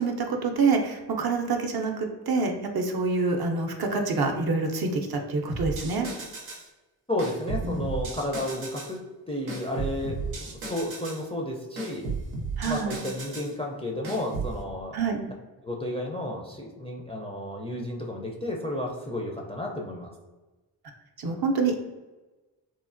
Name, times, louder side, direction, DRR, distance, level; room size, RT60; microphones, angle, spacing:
voice 1, 0.0-6.1 7.6-7.9 12.6-13.0 14.9-15.2 21.2-21.8, right 4 dB, 50° right, 2 dB, 0.6 m, -26 dB
sound 1, 5.5-6.7 7.2-8.9 9.5-11.2 11.8-13.5 14.0-14.6, right 4 dB, 90° right, 0.7 m, -34 dB
voice 2, 7.1-12.1 12.6-15.0 15.6-20.1, left 1 dB, 15° left, -1 dB, 0.4 m, -32 dB
3.1 x 2.1 x 2.5 m, 1.2 s
supercardioid pair, 40°, 48 cm